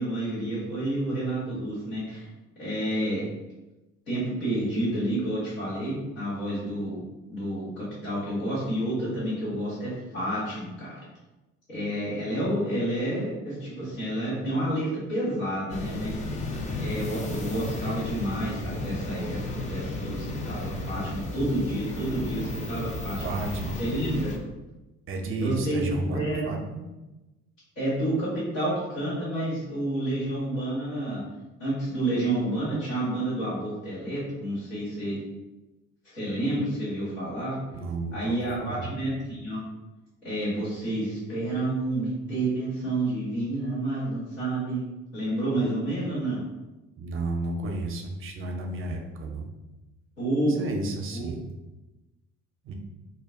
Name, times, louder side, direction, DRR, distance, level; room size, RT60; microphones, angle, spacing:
voice 1, 0.0-2.2 2.6-3.2 4.1-7.0 7.3-10.9 11.7-16.2 16.8-23.3 23.7-24.3 25.4-26.5 27.8-28.3 28.5-31.2 31.6-35.2 36.0-37.5 38.1-39.6 40.2-44.8 45.1-46.4 50.2-50.7 51.1-51.3, right 1 dB, 90° left, -12 dB, 1.1 m, -29 dB
sound 1, 15.7-24.4, left 2 dB, 20° left, 0.4 m, -33 dB
voice 2, 23.2-23.8 25.1-26.8 37.7-38.9 47.0-49.5 50.4-51.5 52.6-52.8, right 2 dB, 35° right, 2 dB, 0.6 m, -32 dB
2.2 x 2.2 x 3.5 m, 1.1 s
figure-of-eight pair, 55°, 38 cm